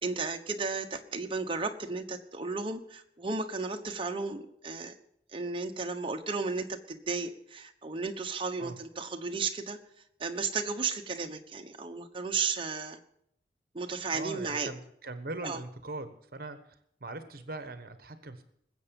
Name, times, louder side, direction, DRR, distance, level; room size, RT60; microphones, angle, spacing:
voice 1, 0.0-4.9 5.3-9.8 10.2-13.0 13.7-14.7 15.4-15.6, right 4 dB, 30° right, 5 dB, 1.1 m, -34 dB
voice 2, 14.1-18.4, right 2 dB, 55° right, 10 dB, 1.2 m, -41 dB
20.5 x 8.0 x 7.0 m, 0.73 s
head